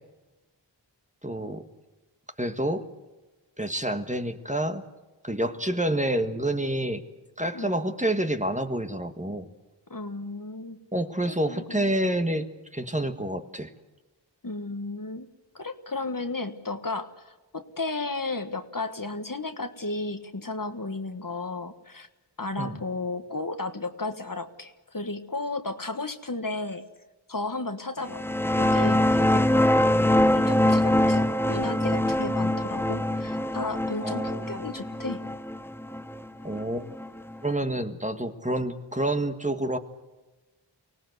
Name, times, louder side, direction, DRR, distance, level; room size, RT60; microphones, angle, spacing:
voice 1, 1.2-1.6 2.4-2.8 3.6-4.8 5.2-7.0 7.4-9.5 10.9-12.4 12.7-13.7 22.6-22.8 34.0-34.5 36.4-36.9 37.4-39.8, right 1 dB, 15° right, 7 dB, 1.6 m, -28 dB
voice 2, 9.9-10.8 11.3-11.9 14.4-15.3 15.5-22.1 22.4-26.8 27.3-28.2 28.6-29.7 30.3-35.2, left 3 dB, 45° left, 8 dB, 1.5 m, -34 dB
sound 1, 28.1-37.4, left 1 dB, 5° left, 0.6 m, -24 dB
24.5 x 18.0 x 8.1 m, 1.1 s
wide cardioid pair, 45°, 44 cm